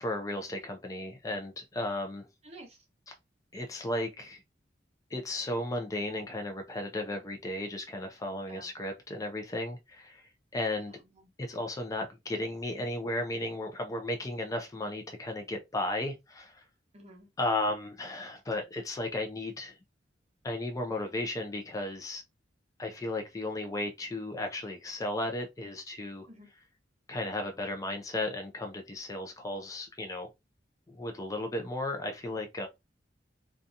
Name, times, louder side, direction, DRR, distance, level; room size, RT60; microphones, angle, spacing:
voice 1, 0.0-2.3 3.5-4.4 5.1-10.2 10.5-11.0 11.5-16.6 17.4-19.8 20.4-22.2 22.8-26.3 27.1-30.3 30.9-32.7, left 1 dB, 20° left, 0.4 m, -34 dB
voice 2, 2.4-2.8 8.5-8.8 10.8-11.3 16.9-17.3 26.3-26.5, right 1 dB, 35° right, 0.9 m, -52 dB
2.7 x 2.3 x 2.5 m
head